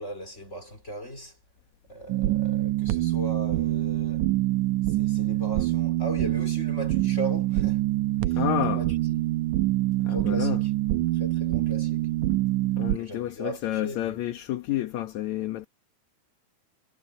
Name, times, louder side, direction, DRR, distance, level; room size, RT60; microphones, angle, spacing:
voice 1, 0.0-1.4 1.9-4.3 4.8-7.9 8.2-9.3 10.0-10.7 11.1-12.1 12.9-14.2, right 1 dB, 20° left, 3.2 m, -38 dB
sound 1, 2.1-13.0, right 16 dB, 80° right, 2.0 m, -25 dB
voice 2, 8.3-8.8 10.0-10.6 12.8-15.7, left 12 dB, 65° left, 2.4 m, -30 dB
omnidirectional pair, 3.7 m